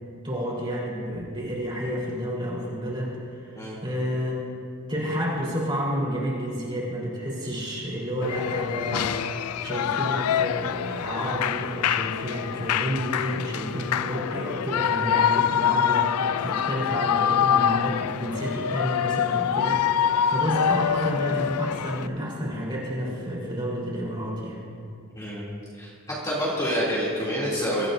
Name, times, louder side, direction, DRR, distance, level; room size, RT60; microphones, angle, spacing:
voice 1, 0.2-4.4 4.9-24.6, equal, 20° right, -5 dB, 4.2 m, -30 dB
Shout / Cheering, 8.2-22.1, left 8 dB, 90° left, 0.4 m, -25 dB
voice 2, 25.2-25.5 25.8-25.9 26.2-27.9, equal, 15° left, -8 dB, 2.9 m, -27 dB
24.0 x 14.0 x 2.7 m, 2.4 s
head